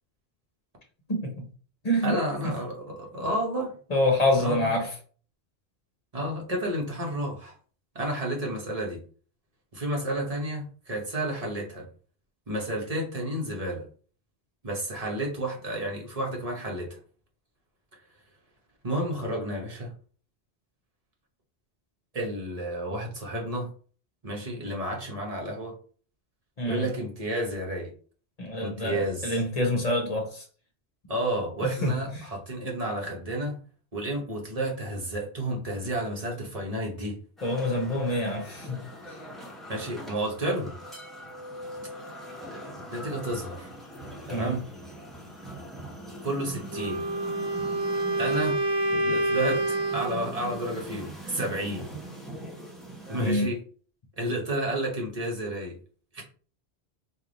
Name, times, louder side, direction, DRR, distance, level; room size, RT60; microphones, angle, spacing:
voice 1, 1.1-1.5 1.8-2.5 3.9-4.9 26.6-26.9 28.4-30.4 31.6-32.2 37.4-38.8 44.3-44.6 53.2-53.5, left 1 dB, 40° left, 1 dB, 0.8 m, -27 dB
voice 2, 2.0-3.7 4.4-4.7 6.1-7.6 7.9-9.0 9.7-11.9 12.5-13.8 14.6-17.0 18.8-19.9 22.1-23.7 24.2-25.7 26.6-27.9 28.6-29.4 31.1-33.6 33.9-37.2 39.7-40.8 42.9-43.7 44.3-44.6 46.2-47.1 48.2-48.6 49.0-51.9 53.1-53.6 54.2-55.7 56.1-56.2, right 1 dB, 35° right, -1 dB, 1.0 m, -31 dB
sound 1, 37.4-53.3, right 1 dB, ahead, 0.9 m, -42 dB
Wind instrument woodwind instrument, 46.7-50.2, right 1 dB, 65° right, 0.9 m, -27 dB
3.3 x 2.5 x 3.9 m, 0.42 s
omnidirectional pair, 1.1 m